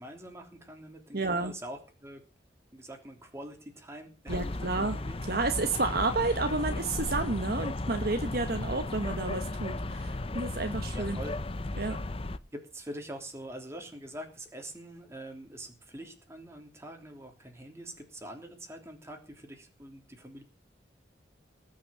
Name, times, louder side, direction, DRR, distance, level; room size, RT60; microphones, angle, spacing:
voice 1, 0.0-2.2 2.7-5.4 10.9-11.4 12.5-20.4, right 1 dB, 15° right, 3 dB, 3.2 m, -44 dB
voice 2, 1.1-1.5 4.3-5.0 5.3-11.2 11.8-12.0, right 3 dB, 55° right, 7 dB, 1.3 m, -30 dB
sound 1, 4.3-12.4, left 2 dB, 30° left, 0.7 m, -35 dB
19.0 x 6.5 x 7.6 m, 0.36 s
head